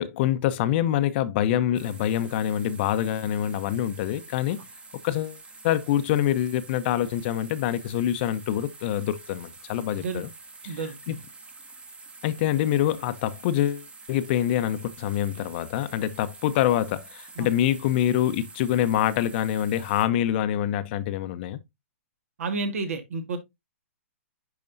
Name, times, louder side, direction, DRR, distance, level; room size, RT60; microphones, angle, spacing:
voice 1, 0.0-4.6 5.0-5.4 5.6-10.3 10.6-10.7 11.1-11.2 12.2-21.6, left 11 dB, 45° left, 0.8 m, -25 dB
sound 1, 1.7-20.1, right 3 dB, 15° right, 1.1 m, -47 dB
voice 2, 10.7-11.2 17.4-17.5 22.4-23.4, right 3 dB, 70° right, 1.8 m, -31 dB
10.5 x 4.2 x 2.6 m
hypercardioid pair, 130°, 8 cm